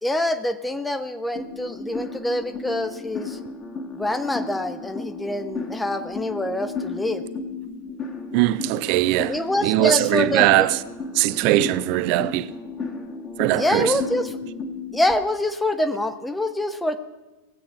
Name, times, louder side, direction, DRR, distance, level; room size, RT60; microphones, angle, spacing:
voice 1, 0.0-3.4 4.0-7.2 9.3-10.7 13.5-14.3 14.9-17.0, left 1 dB, 5° left, 0.9 m, -25 dB
sound 1, 1.3-15.1, left 4 dB, 25° left, 1.6 m, -34 dB
voice 2, 8.3-10.8 11.1-12.5 13.4-14.0, right 16 dB, 45° right, 0.5 m, -20 dB
18.5 x 8.6 x 5.9 m
figure-of-eight pair, 90°, 0 cm